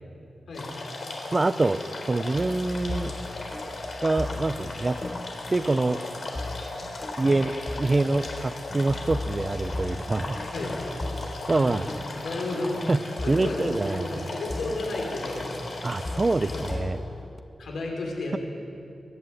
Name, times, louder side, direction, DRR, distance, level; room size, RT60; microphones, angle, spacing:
sound 1, 0.5-16.7, left 2 dB, 45° left, 3.8 m, -37 dB
voice 1, 1.3-1.8 2.1-3.1 4.0-5.0 5.5-6.0 7.2-10.4 11.5-11.9 12.9-13.0 13.3-14.2 15.8-17.0, right 2 dB, 25° right, 14 dB, 0.5 m, -25 dB
sound 2, 2.4-17.4, left 2 dB, 20° left, 0.9 m, -38 dB
voice 2, 10.5-10.8 11.5-11.7 12.2-12.7 13.2-15.5 16.5-16.9 17.6-18.4, left 2 dB, 75° left, 0 dB, 5.4 m, -33 dB
22.5 x 14.5 x 9.7 m, 2.6 s
wide cardioid pair, 150°, 0 cm